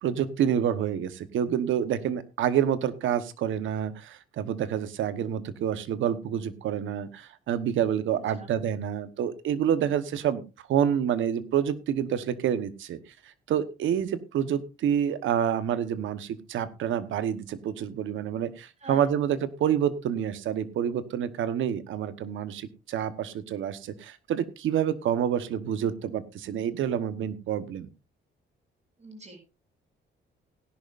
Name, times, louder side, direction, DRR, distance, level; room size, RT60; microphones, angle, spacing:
voice 1, 0.0-10.4 10.7-13.0 13.5-27.9, right 9 dB, 75° right, 13 dB, 1.2 m, -28 dB
voice 2, 29.0-29.4, right 2 dB, 35° right, 4 dB, 6.0 m, -43 dB
17.5 x 11.0 x 2.5 m, 0.29 s
cardioid pair, 90°, 20 cm